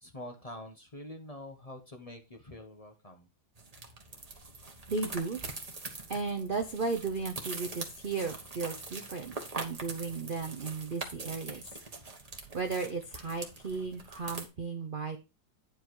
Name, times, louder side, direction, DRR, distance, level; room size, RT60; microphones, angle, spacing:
voice 1, 0.0-3.3, left 1 dB, 25° left, 4 dB, 1.0 m, -46 dB
sound 1, 3.6-14.5, right 3 dB, 20° right, 1.2 m, -43 dB
voice 2, 4.9-5.5 6.1-11.8 12.5-15.2, right 4 dB, 65° right, 5 dB, 0.5 m, -35 dB
9.9 x 4.8 x 4.7 m, 0.28 s
omnidirectional pair, 2.1 m